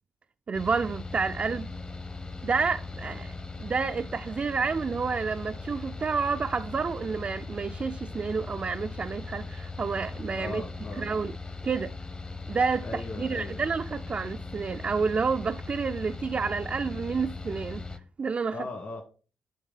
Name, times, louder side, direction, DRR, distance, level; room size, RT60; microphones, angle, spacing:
Mechanical fan, 0.5-18.0, left 3 dB, 30° left, 1.0 m, -39 dB
voice 1, 0.5-1.7 2.4-10.6 11.0-11.3 11.6-11.9 12.5-17.8 18.2-18.6, right 5 dB, 40° right, 0.4 m, -29 dB
voice 2, 10.4-11.1 12.8-13.6 18.5-19.0, left 2 dB, 50° left, 2.2 m, -38 dB
9.2 x 3.5 x 5.6 m
hypercardioid pair, 45°, 3 cm